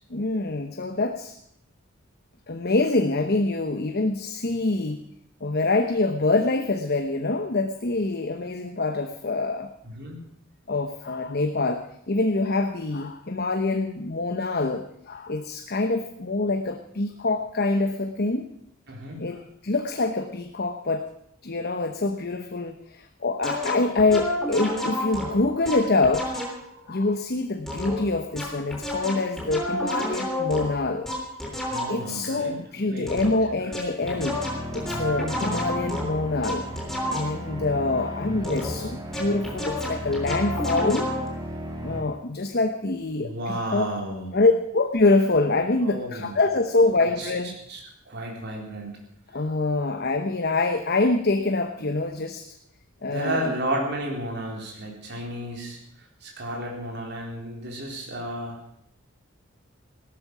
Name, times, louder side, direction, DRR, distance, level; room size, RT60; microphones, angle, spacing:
voice 1, 0.1-1.3 2.5-5.0 5.4-9.7 10.7-18.5 19.2-21.1 21.4-26.3 26.9-31.1 31.8-34.4 34.7-36.7 37.1-41.1 41.8-43.9 44.3-47.6 49.3-52.5 53.0-53.5, left 2 dB, 50° left, 6 dB, 1.0 m, -25 dB
voice 2, 9.8-10.2 18.9-19.3 31.7-33.3 43.2-44.4 45.8-46.4 47.2-47.3 47.7-47.8 48.1-49.0 53.1-55.8 56.2-58.6, right 1 dB, 55° right, -1 dB, 4.1 m, -32 dB
sound 1, 23.4-26.7 27.7-32.2 33.1-33.5 33.7-37.5 38.4-41.3, left 1 dB, ahead, 3.5 m, -31 dB
sound 2, 34.0-42.0, equal, 20° right, 3.0 m, -35 dB
17.0 x 13.0 x 6.1 m, 0.74 s
head